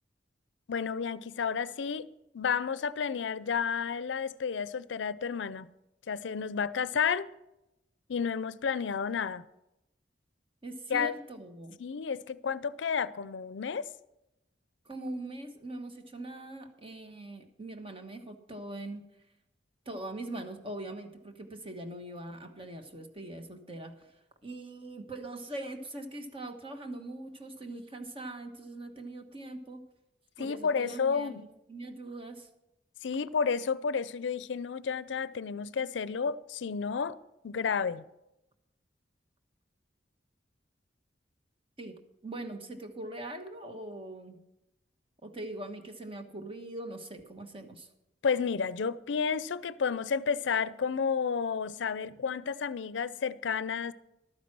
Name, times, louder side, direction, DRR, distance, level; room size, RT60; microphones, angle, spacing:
voice 1, 0.7-5.7 6.1-7.3 8.1-9.4 10.9-11.1 11.8-13.9 30.4-31.5 33.0-37.2 37.4-38.0 48.2-53.9, left 6 dB, 85° left, 0.5 m, -31 dB
voice 2, 10.6-11.8 14.8-19.0 19.8-24.1 24.4-29.8 30.4-32.5 41.8-41.9 42.2-44.4 45.2-47.9, right 1 dB, 30° right, 1.3 m, -42 dB
12.5 x 9.3 x 6.0 m
head